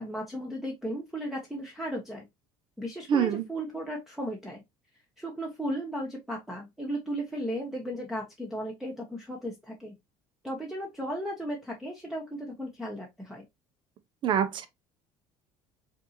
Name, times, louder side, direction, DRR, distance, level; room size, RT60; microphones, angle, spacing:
voice 1, 0.0-2.3 2.8-4.6 5.2-9.9 10.4-13.5, equal, 5° right, 0.9 m, -35 dB
voice 2, 3.1-3.4 14.2-14.7, right 8 dB, 50° right, 0.9 m, -25 dB
5.2 x 2.7 x 2.8 m
cardioid pair, 120°, 11 cm